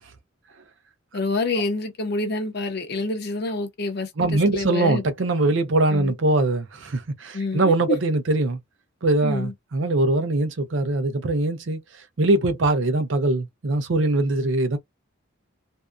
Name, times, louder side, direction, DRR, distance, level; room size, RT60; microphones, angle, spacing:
voice 1, 1.1-5.0 5.9-6.1 7.3-8.0 9.2-9.5, left 3 dB, 55° left, 0.7 m, -27 dB
voice 2, 4.2-8.6 9.0-11.8 12.2-14.8, right 2 dB, 70° right, 0.6 m, -22 dB
2.6 x 2.2 x 2.3 m
head